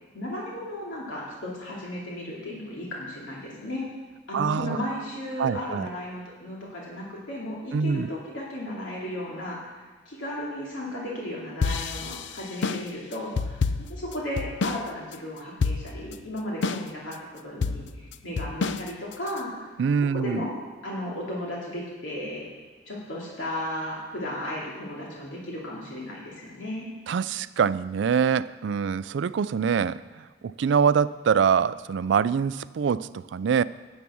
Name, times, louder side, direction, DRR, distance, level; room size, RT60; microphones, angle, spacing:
voice 1, 0.1-3.9 4.3-9.8 10.1-13.6 13.9-17.2 17.4-19.6 20.1-20.6 20.8-22.5 22.9-26.9, left 1 dB, 85° left, -4 dB, 2.7 m, -35 dB
voice 2, 4.3-4.8 5.4-5.9 7.7-8.1 19.8-20.5 27.1-33.6, right 6 dB, 70° right, 17 dB, 0.3 m, -24 dB
sound 1, 11.6-14.9 15.1-15.2 15.6-16.1 16.6-17.1 17.6-19.4, left 4 dB, 70° left, 0.4 m, -28 dB
10.5 x 8.2 x 6.2 m, 1.4 s
head